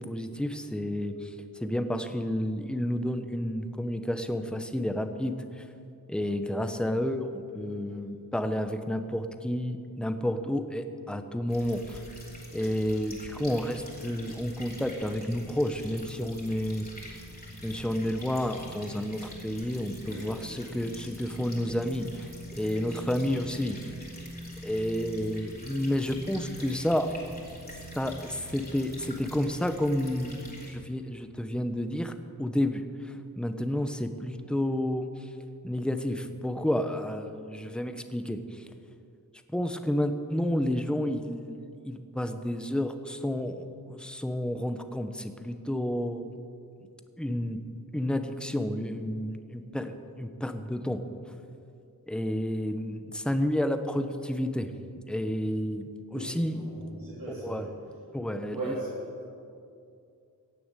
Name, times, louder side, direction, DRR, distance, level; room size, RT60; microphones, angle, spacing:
voice 1, 0.0-5.4 6.1-12.0 12.5-17.2 17.6-22.3 22.6-23.8 24.6-27.1 27.7-32.1 32.4-35.3 35.6-38.6 39.5-46.3 47.2-47.6 47.9-51.0 52.1-54.7 55.1-56.6 57.4-57.7 58.1-58.7, left 1 dB, 5° left, 8 dB, 0.8 m, -30 dB
sound 1, 11.5-30.7, equal, 25° left, 3.1 m, -44 dB
voice 2, 20.1-20.4 56.1-57.7 58.5-59.3, right 2 dB, 85° right, -8 dB, 3.6 m, -38 dB
16.0 x 6.9 x 9.0 m, 2.4 s
wide cardioid pair, 100°, 35 cm